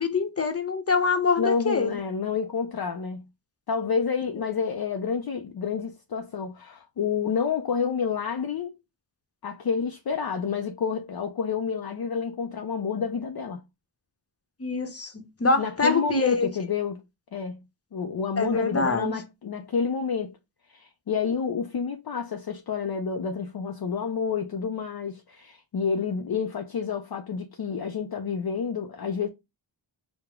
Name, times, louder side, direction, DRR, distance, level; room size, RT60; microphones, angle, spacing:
voice 1, 0.0-1.9 14.6-16.5 18.4-19.2, left 4 dB, 30° left, 0.9 m, -25 dB
voice 2, 1.4-3.2 3.7-8.8 9.4-13.6 15.6-17.0 17.3-17.6 17.9-20.4 20.7-29.3, left 6 dB, 50° left, 0.6 m, -29 dB
4.8 x 2.2 x 3.5 m
cardioid pair, 50°, 47 cm